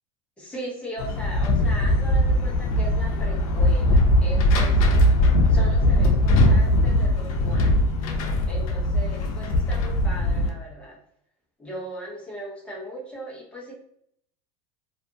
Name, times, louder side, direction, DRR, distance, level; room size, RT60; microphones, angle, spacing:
voice 1, 0.4-5.0 5.5-7.8 8.5-11.0 11.6-13.7, right 1 dB, 5° left, -5 dB, 0.9 m, -38 dB
sound 1, 1.0-10.5, left 1 dB, 75° left, 0.6 m, -20 dB
2.5 x 2.4 x 2.6 m, 0.66 s
supercardioid pair, 155°, 18 cm